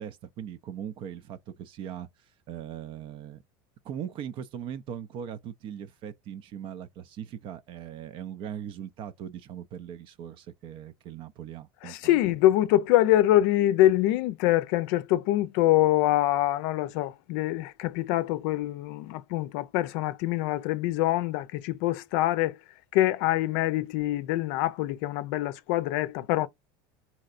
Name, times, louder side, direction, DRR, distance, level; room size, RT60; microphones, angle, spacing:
voice 1, 0.0-2.1 2.5-3.4 3.8-12.2, right 9 dB, 50° right, 0.5 m, -39 dB
voice 2, 11.8-22.6 22.9-26.5, left 15 dB, 65° left, 0.5 m, -25 dB
3.2 x 2.8 x 2.5 m
supercardioid pair, 105°, 11 cm